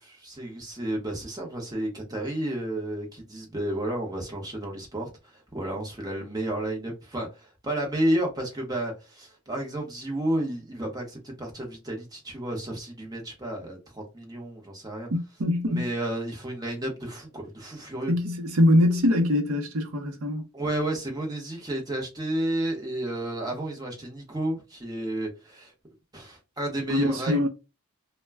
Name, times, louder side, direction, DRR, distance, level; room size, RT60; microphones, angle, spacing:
voice 1, 0.0-15.1 15.7-18.1 20.5-25.7 26.1-27.5, right 1 dB, 15° right, 0.8 m, -31 dB
voice 2, 15.1-15.9 18.1-20.4 26.9-27.5, left 1 dB, 75° right, 0.7 m, -23 dB
2.1 x 2.1 x 3.4 m
head